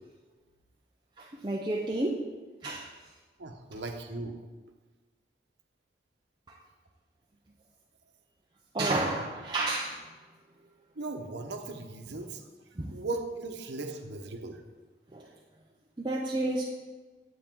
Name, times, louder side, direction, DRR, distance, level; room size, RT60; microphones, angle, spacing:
voice 1, 1.2-2.3 2.6-2.9 6.5-6.6 8.7-10.1 12.8-13.0 15.1-15.3 16.0-16.6, right 2 dB, 25° right, -2 dB, 0.6 m, -31 dB
voice 2, 3.4-4.4 11.0-12.4 12.9-14.6, right 2 dB, 80° right, 4 dB, 1.0 m, -37 dB
9.9 x 8.2 x 3.7 m, 1.4 s
head